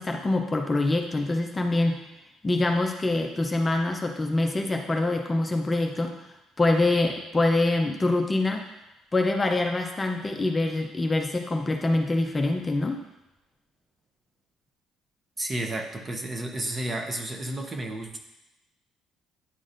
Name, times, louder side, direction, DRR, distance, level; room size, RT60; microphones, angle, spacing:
voice 1, 0.0-2.0 2.4-6.1 6.6-8.6 9.1-13.0, left 2 dB, 20° left, 3 dB, 0.5 m, -25 dB
voice 2, 15.4-18.2, right 1 dB, 25° right, 4 dB, 0.8 m, -32 dB
9.8 x 3.9 x 2.6 m, 0.94 s
cardioid pair, 105°, 0 cm